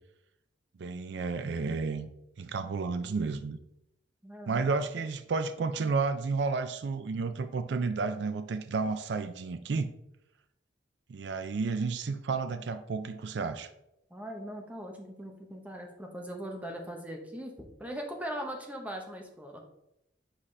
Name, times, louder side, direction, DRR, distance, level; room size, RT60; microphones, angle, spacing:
voice 1, 0.8-2.1 2.4-3.6 4.5-9.9 11.1-13.7, right 4 dB, 65° right, 10 dB, 0.4 m, -31 dB
voice 2, 4.2-4.7 14.1-19.6, equal, 10° right, 2 dB, 0.9 m, -40 dB
7.4 x 4.2 x 3.2 m, 0.83 s
head